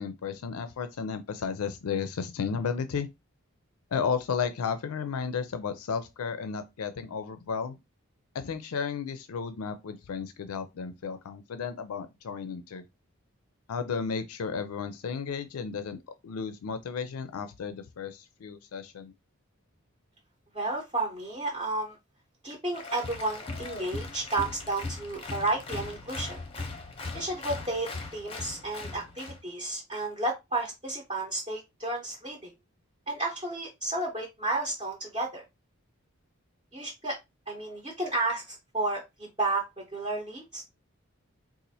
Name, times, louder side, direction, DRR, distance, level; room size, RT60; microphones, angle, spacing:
voice 1, 0.0-3.1 3.9-7.8 8.3-12.8 13.7-16.0 16.2-19.1, left 6 dB, 85° left, 0.4 m, -33 dB
voice 2, 20.5-22.0 22.4-26.4 27.1-32.5 33.1-35.4 36.7-37.2 37.5-40.6, right 2 dB, 25° right, 0.7 m, -32 dB
Applause, 22.7-29.4, left 3 dB, 25° left, 0.6 m, -39 dB
4.1 x 2.4 x 2.7 m
head